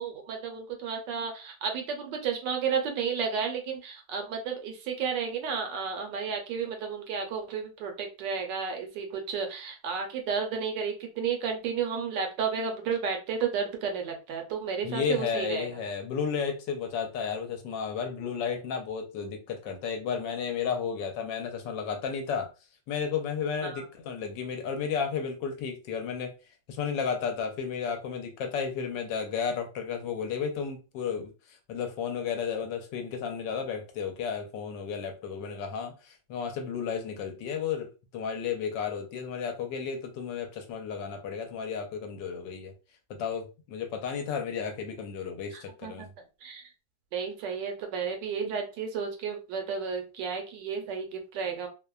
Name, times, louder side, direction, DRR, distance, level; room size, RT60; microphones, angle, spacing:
voice 1, 0.0-15.7 23.6-23.8 45.5-46.1 46.4-46.7 47.1-51.7, right 6 dB, 75° right, 1.2 m, -32 dB
voice 2, 14.8-22.5 22.9-26.3 26.7-42.7 43.1-46.1, left 6 dB, 75° left, 1.2 m, -33 dB
3.0 x 2.1 x 2.2 m
omnidirectional pair, 2.1 m